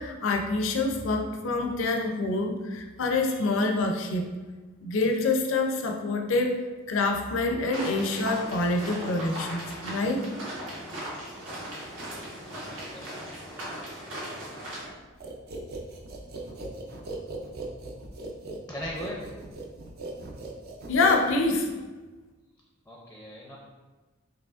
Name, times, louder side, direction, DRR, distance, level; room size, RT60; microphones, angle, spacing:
voice 1, 0.0-4.3 4.8-6.6 6.9-10.2 20.9-21.7, left 3 dB, 70° left, 3 dB, 0.5 m, -26 dB
sound 1, 7.7-14.9, equal, 70° right, 1.3 m, -38 dB
voice 2, 12.7-13.1 18.7-19.3 22.9-23.6, equal, 10° left, -3 dB, 0.5 m, -38 dB
sound 2, 15.2-21.7, right 2 dB, 50° right, 0.5 m, -39 dB
4.9 x 3.0 x 2.4 m, 1.3 s
head